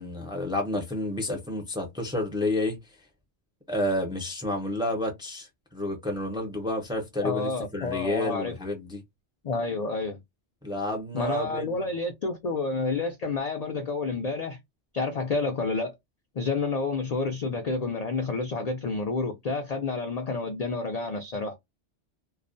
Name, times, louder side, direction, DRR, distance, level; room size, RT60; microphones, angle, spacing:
voice 1, 0.0-2.8 3.7-9.0 10.6-11.9, left 1 dB, 5° right, 0.4 m, -30 dB
voice 2, 7.2-8.6 9.4-10.2 11.1-14.6 14.9-15.9 16.4-21.6, left 3 dB, 65° left, 0.4 m, -29 dB
2.3 x 2.1 x 2.5 m
omnidirectional pair, 1.2 m